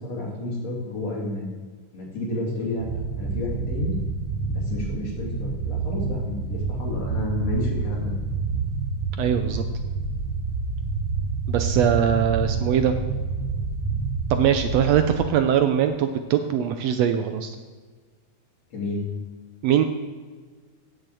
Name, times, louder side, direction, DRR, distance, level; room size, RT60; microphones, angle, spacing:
voice 1, 0.0-1.5 1.9-2.8 3.2-4.0 4.5-8.1 18.7-19.0, left 2 dB, 60° left, -3 dB, 3.8 m, -30 dB
sound 1, 2.8-15.1, right 4 dB, 20° right, 2.6 m, -28 dB
voice 2, 9.2-9.6 11.5-12.9 14.3-17.6 19.6-19.8, right 9 dB, 75° right, 7 dB, 1.6 m, -21 dB
9.4 x 7.6 x 7.8 m, 1.5 s
omnidirectional pair, 3.3 m